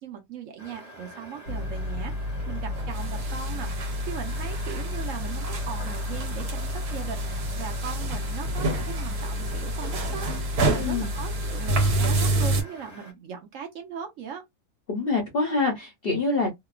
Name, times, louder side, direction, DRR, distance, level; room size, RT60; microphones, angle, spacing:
voice 1, 0.0-2.1 2.5-14.4, right 7 dB, 65° right, 0.9 m, -39 dB
sound 1, 0.6-13.1, right 1 dB, 30° right, 0.9 m, -45 dB
sound 2, 1.5-12.6, right 1 dB, 80° right, 1.4 m, -28 dB
voice 2, 10.7-11.1 14.9-16.5, left 3 dB, 60° left, 0.6 m, -25 dB
2.8 x 2.0 x 2.3 m
omnidirectional pair, 1.6 m